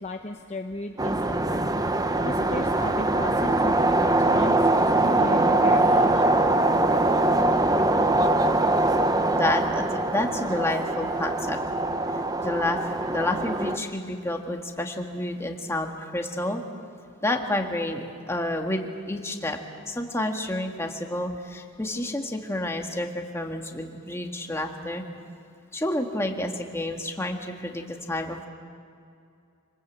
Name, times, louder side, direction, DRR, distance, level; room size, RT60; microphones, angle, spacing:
voice 1, 0.0-1.7 2.2-6.5, left 2 dB, 30° left, 3 dB, 0.9 m, -35 dB
sound 1, 1.0-13.8, right 2 dB, 20° right, 0.9 m, -23 dB
voice 2, 9.2-11.6 12.4-16.6 17.2-19.6 19.9-25.0 25.7-28.5, left 1 dB, 15° left, 3 dB, 1.8 m, -29 dB
27.0 x 20.0 x 8.3 m, 2.4 s
head